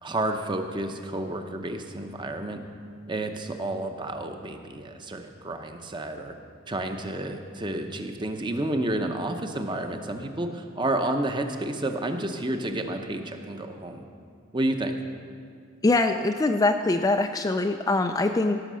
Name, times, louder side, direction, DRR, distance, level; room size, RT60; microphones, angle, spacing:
voice 1, 0.0-2.6 3.1-6.3 6.7-14.0 14.5-15.0, right 1 dB, 20° right, 5 dB, 0.7 m, -30 dB
voice 2, 15.8-18.6, left 2 dB, 15° left, 5 dB, 0.3 m, -23 dB
16.5 x 6.5 x 6.3 m, 2.3 s
head